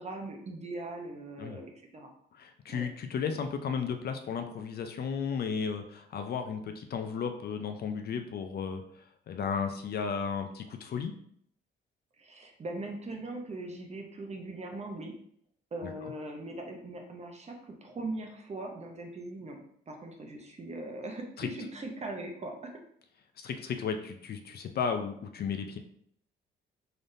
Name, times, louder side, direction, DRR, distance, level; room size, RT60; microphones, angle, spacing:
voice 1, 0.0-2.1 2.7-2.9 12.2-15.1 15.7-19.6 19.9-22.8, right 2 dB, 35° right, 3 dB, 0.8 m, -40 dB
voice 2, 2.3-11.1 15.8-15.9 21.4-21.5 23.4-25.8, left 6 dB, 55° left, 6 dB, 0.5 m, -34 dB
3.9 x 3.4 x 2.6 m, 0.66 s
cardioid pair, 90°, 20 cm